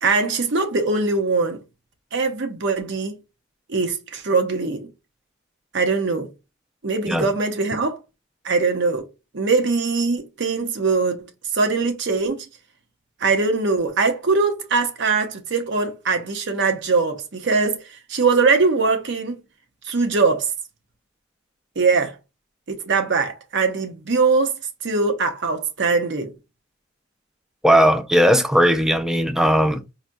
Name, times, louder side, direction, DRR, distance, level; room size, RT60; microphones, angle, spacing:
voice 1, 0.0-1.6 2.1-3.2 3.7-4.9 5.7-6.3 6.8-8.0 8.4-9.1 9.3-12.5 13.2-19.4 19.8-20.5 21.8-22.1 22.7-24.6 24.8-26.3, right 4 dB, 65° right, 0.8 m, -21 dB
voice 2, 27.6-29.9, equal, 5° right, 0.4 m, -17 dB
4.2 x 2.6 x 2.2 m
head